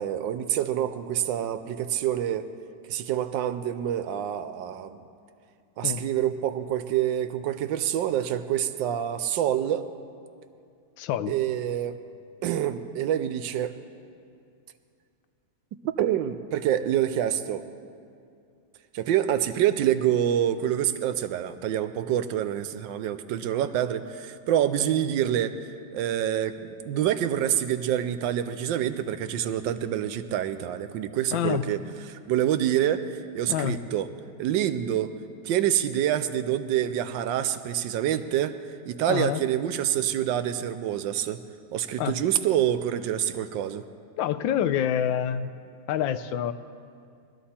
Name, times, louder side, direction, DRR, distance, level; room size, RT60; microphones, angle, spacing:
voice 1, 0.0-2.5 2.9-5.0 5.8-9.8 11.3-12.0 12.4-13.7 16.0-17.7 18.9-25.5 25.9-31.8 32.1-34.1 34.4-35.1 35.4-38.6 38.9-41.4 41.7-43.8, right 11 dB, 80° right, 11 dB, 1.3 m, -26 dB
voice 2, 11.0-11.3 31.3-31.7 33.5-33.8 39.1-39.4 42.0-42.2 44.2-45.5 45.9-46.5, left 9 dB, 80° left, 12 dB, 1.3 m, -27 dB
20.0 x 13.0 x 4.3 m, 2.4 s
omnidirectional pair, 2.1 m